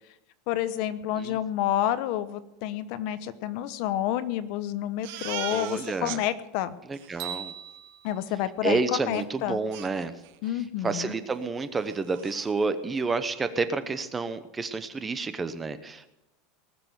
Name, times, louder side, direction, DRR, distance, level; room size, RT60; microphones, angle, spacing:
voice 1, 0.5-6.7 8.0-9.6 10.4-11.1, left 12 dB, 50° left, 13 dB, 1.0 m, -29 dB
Crying sobbing, 5.0-6.2 6.6-6.7 6.9-7.3 9.1-9.2 9.7-10.5 10.8-11.0 11.4-11.5 11.8-12.5, right 13 dB, 60° right, 1.3 m, -39 dB
voice 2, 5.2-6.2 6.9-7.5 8.6-10.1 10.8-16.1, right 4 dB, 15° right, 11 dB, 0.8 m, -30 dB
sound 1, 7.2-9.5, right 11 dB, 45° right, 4.3 m, -42 dB
19.5 x 6.8 x 9.5 m, 0.90 s
supercardioid pair, 165°, 0 cm